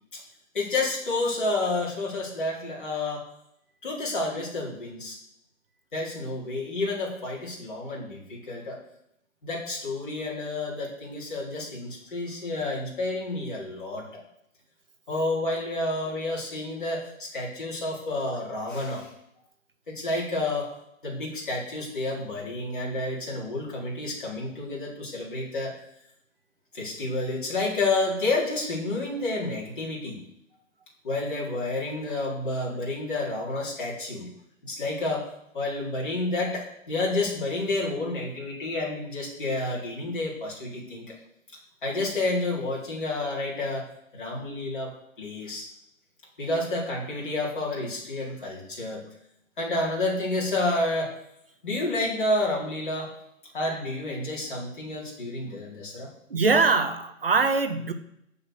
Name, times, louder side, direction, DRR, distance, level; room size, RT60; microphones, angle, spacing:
voice 1, 0.5-3.2 3.8-5.2 5.9-8.8 9.4-14.2 15.1-19.1 19.9-20.7 21.0-25.7 26.7-30.2 31.0-34.3 34.6-35.3 35.5-41.1 41.8-43.9 44.1-45.7 46.4-49.0 49.6-51.1 51.6-53.1 53.5-56.1, left 2 dB, 35° left, -4 dB, 4.0 m, -30 dB
voice 2, 56.3-57.9, right 4 dB, 40° right, 8 dB, 1.2 m, -22 dB
16.0 x 5.8 x 6.7 m, 0.76 s
hypercardioid pair, 180°, 41 cm